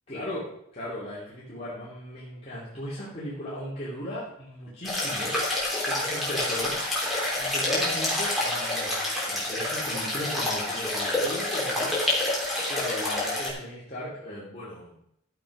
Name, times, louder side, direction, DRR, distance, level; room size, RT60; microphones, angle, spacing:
voice 1, 0.1-0.5 0.7-5.3 5.8-6.8 7.4-11.9 12.7-15.0, left 1 dB, 30° left, -9 dB, 3.0 m, -37 dB
sound 1, 4.8-13.5, left 1 dB, ahead, 3.6 m, -28 dB
13.0 x 7.6 x 5.0 m, 0.74 s
head